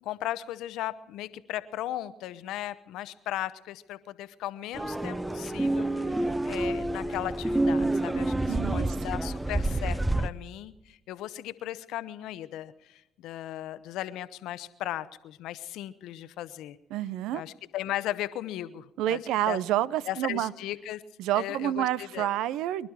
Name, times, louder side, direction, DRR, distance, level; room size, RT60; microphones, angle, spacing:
voice 1, 0.0-16.8 17.3-19.2 19.5-19.6 20.1-21.0 21.4-22.3, left 13 dB, 70° left, 14 dB, 0.9 m, -37 dB
sound 1, 4.7-10.3, right 1 dB, 10° right, 0.7 m, -28 dB
voice 2, 8.5-9.0 16.9-17.4 19.0-20.5 21.2-22.9, right 12 dB, 70° right, 20 dB, 0.5 m, -28 dB
24.5 x 12.0 x 4.8 m, 0.88 s
hypercardioid pair, 55°, 0 cm